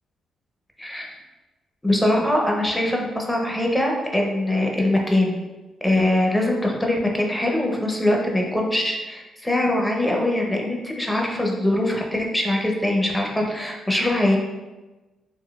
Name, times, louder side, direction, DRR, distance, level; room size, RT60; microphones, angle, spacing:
voice 1, 1.8-5.4 5.8-14.4, left 1 dB, 10° left, 0 dB, 0.8 m, -22 dB
3.6 x 2.7 x 2.4 m, 1.1 s
hypercardioid pair, 45°, 0 cm